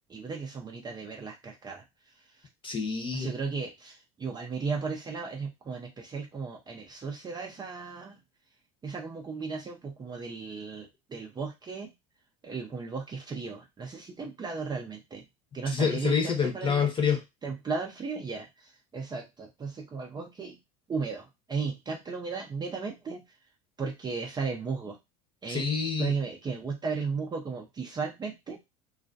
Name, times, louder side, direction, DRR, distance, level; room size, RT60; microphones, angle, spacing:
voice 1, 0.1-2.4 3.1-8.2 8.8-11.9 12.4-15.2 15.5-16.9 17.4-20.6 20.9-23.4 23.8-25.0 25.4-25.7 26.0-28.6, right 4 dB, 25° right, 2 dB, 0.5 m, -35 dB
voice 2, 2.6-3.3 15.7-17.2 25.5-26.1, left 6 dB, 30° left, 4 dB, 0.9 m, -27 dB
2.3 x 2.2 x 2.5 m, 0.22 s
supercardioid pair, 90°, 18 cm